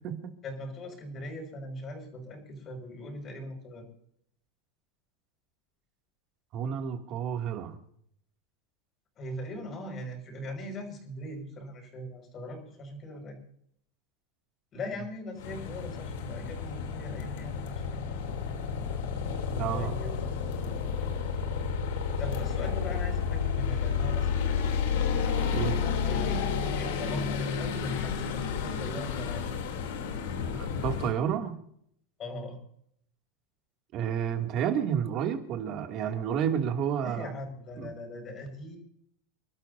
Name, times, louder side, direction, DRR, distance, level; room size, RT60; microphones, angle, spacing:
voice 1, 0.4-3.9 9.2-13.4 14.7-18.4 19.7-20.2 20.5-20.8 22.2-24.8 26.0-26.4 26.8-29.5 32.2-32.6 37.0-38.8, left 1 dB, 30° left, 4 dB, 5.7 m, -40 dB
voice 2, 6.5-7.8 19.5-19.9 25.5-25.8 30.5-31.6 33.9-37.3 37.8-37.9, right 8 dB, 40° right, 4 dB, 2.5 m, -30 dB
sound 1, 15.4-31.1, left 6 dB, 80° left, 3.1 m, -31 dB
29.5 x 12.5 x 2.7 m, 0.69 s
supercardioid pair, 145°, 0 cm